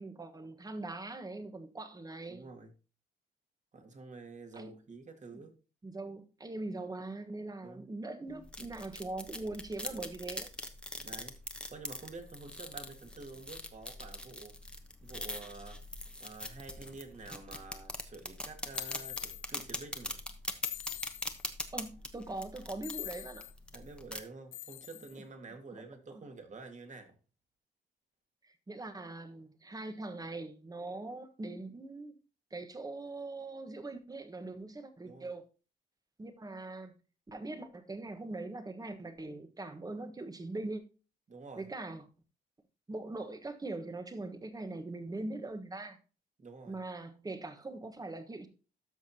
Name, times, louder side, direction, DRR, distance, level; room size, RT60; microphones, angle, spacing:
voice 1, 0.0-2.5 4.6-4.7 5.3-5.4 5.8-10.5 21.7-23.5 25.7-25.8 26.1-26.2 28.4-32.1 32.5-35.4 36.2-36.9 37.3-40.8 41.6-42.1 42.9-46.0 46.7-48.5, right 2 dB, 20° right, 1.3 m, -41 dB
voice 2, 2.3-2.7 3.7-5.6 7.6-7.9 11.0-11.4 11.7-14.6 15.0-15.8 16.2-20.2 23.7-27.1 35.0-35.3 41.3-41.7 46.4-46.8, right 3 dB, 35° right, 2.1 m, -49 dB
sound 1, 8.3-24.2, left 1 dB, 5° left, 1.1 m, -42 dB
sound 2, 18.7-19.4 20.6-21.5 22.8-23.5 24.5-25.2, left 14 dB, 80° left, 0.6 m, -43 dB
13.0 x 5.8 x 2.9 m
cardioid pair, 90°, 20 cm